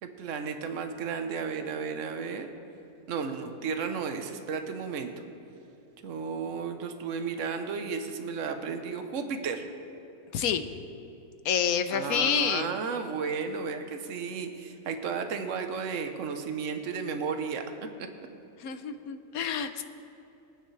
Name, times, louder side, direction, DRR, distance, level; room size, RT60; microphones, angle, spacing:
voice 1, 0.0-2.5 3.1-5.1 6.0-9.6 11.9-17.6, right 5 dB, 65° right, 6 dB, 1.2 m, -33 dB
voice 2, 11.4-12.7 18.6-19.8, left 8 dB, 85° left, 9 dB, 1.2 m, -28 dB
24.0 x 9.0 x 3.3 m, 2.9 s
omnidirectional pair, 1.5 m